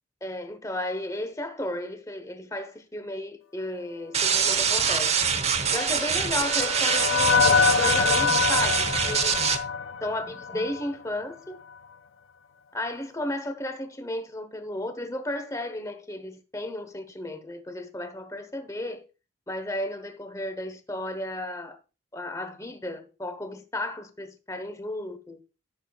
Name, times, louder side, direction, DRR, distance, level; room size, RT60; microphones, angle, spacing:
voice 1, 0.2-5.1 5.7-9.4 10.0-11.6 12.7-19.0 19.5-21.8 22.1-25.4, left 1 dB, 15° left, 1.1 m, -34 dB
sound 1, 4.1-9.6, right 6 dB, 35° right, 1.0 m, -24 dB
sound 2, 5.6-11.0, left 5 dB, 85° left, 0.5 m, -25 dB
14.0 x 6.8 x 2.4 m
head